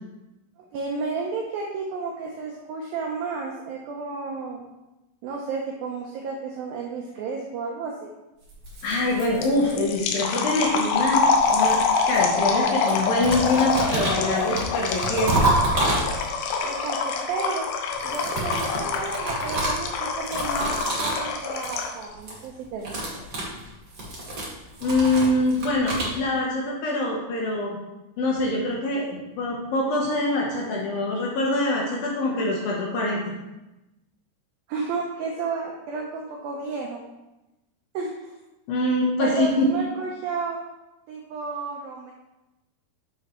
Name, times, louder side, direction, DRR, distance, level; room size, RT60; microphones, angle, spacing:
voice 1, 0.6-4.6 5.2-8.1 16.6-17.7 18.0-23.1 34.7-37.0 37.9-38.3 39.2-40.6 41.1-42.1, right 4 dB, 85° right, -1 dB, 2.1 m, -32 dB
sound 1, 8.5-10.1 11.0-12.6 12.9-16.5 17.9-21.3 21.5-21.9 22.1-22.4 22.7-26.1, right 2 dB, 35° right, 1.6 m, -29 dB
voice 2, 8.8-15.6 24.8-27.8 28.2-33.2 38.7-39.7, left 2 dB, 70° left, -2 dB, 2.3 m, -24 dB
sound 2, 9.4-22.0, left 5 dB, 85° left, 3.0 m, -25 dB
8.5 x 6.7 x 3.1 m, 0.99 s
omnidirectional pair, 5.1 m